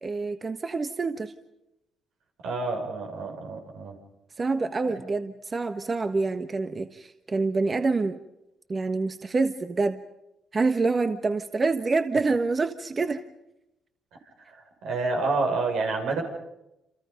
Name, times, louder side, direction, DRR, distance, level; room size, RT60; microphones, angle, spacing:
voice 1, 0.0-1.3 4.4-8.2 8.7-10.0 10.5-13.2, right 3 dB, 30° right, 8 dB, 1.3 m, -26 dB
voice 2, 2.4-3.9 14.1-14.6 14.8-16.2, right 3 dB, 85° right, 2 dB, 6.3 m, -28 dB
28.5 x 28.0 x 5.3 m, 0.88 s
cardioid pair, 90°, 0 cm